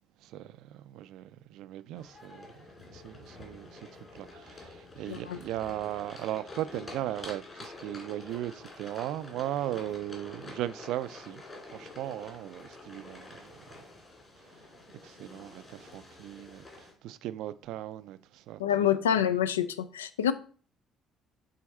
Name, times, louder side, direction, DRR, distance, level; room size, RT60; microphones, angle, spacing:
voice 1, 0.2-2.5 2.9-3.9 4.1-11.4 11.7-13.5 14.9-19.2, right 13 dB, 60° right, 0.3 m, -37 dB
sound 1, 2.0-16.9, left 2 dB, 30° left, 2.8 m, -48 dB
voice 2, 5.1-5.4 18.6-20.3, left 9 dB, 80° left, 0.3 m, -27 dB
7.6 x 3.5 x 4.1 m
figure-of-eight pair, 50°, 0 cm